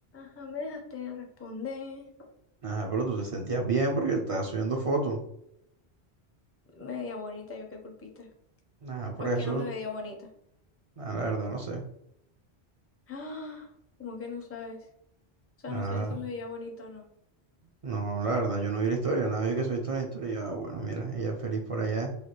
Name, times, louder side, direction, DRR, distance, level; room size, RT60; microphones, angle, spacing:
voice 1, 0.1-2.3 6.7-8.3 9.2-10.3 13.1-13.7 14.0-14.9 15.6-17.0, left 4 dB, 20° left, 2 dB, 0.4 m, -39 dB
voice 2, 2.6-5.2 8.8-9.7 11.0-11.8 15.7-16.2 17.8-22.1, right 3 dB, 50° right, 1 dB, 0.4 m, -30 dB
3.3 x 2.3 x 2.9 m, 0.77 s
omnidirectional pair, 1.0 m